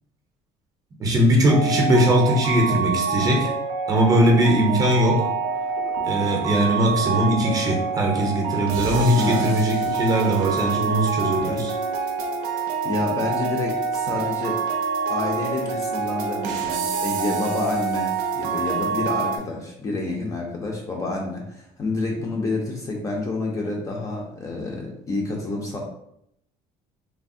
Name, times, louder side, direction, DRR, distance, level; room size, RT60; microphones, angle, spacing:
voice 1, 1.0-3.5 3.9-5.3 6.0-11.7, equal, 25° right, 0 dB, 0.6 m, -20 dB
sound 1, 1.5-19.4, right 5 dB, 80° right, 0.5 m, -26 dB
sound 2, 5.4-11.5, left 1 dB, 55° left, 0.7 m, -41 dB
voice 2, 9.1-9.5 12.8-14.6 15.1-25.8, left 2 dB, 25° left, -1 dB, 0.4 m, -28 dB
3.2 x 2.0 x 2.5 m, 0.74 s
cardioid pair, 160°, 14 cm